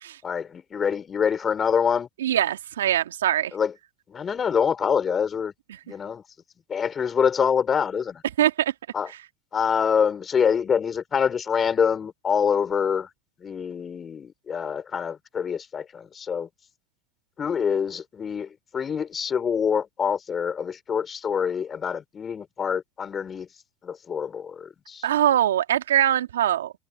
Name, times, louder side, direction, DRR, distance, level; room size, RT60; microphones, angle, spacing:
voice 1, 0.2-2.1 3.5-3.7 4.1-5.5 5.9-6.2 6.7-8.2 8.9-9.1 9.5-13.1 13.4-16.5 17.4-23.5 23.8-25.1, left 7 dB, 30° left, 4.5 m, -25 dB
voice 2, 2.2-3.5 8.4-8.7 25.0-26.7, right 11 dB, 90° right, 2.3 m, -22 dB
hypercardioid pair, 85°, 0 cm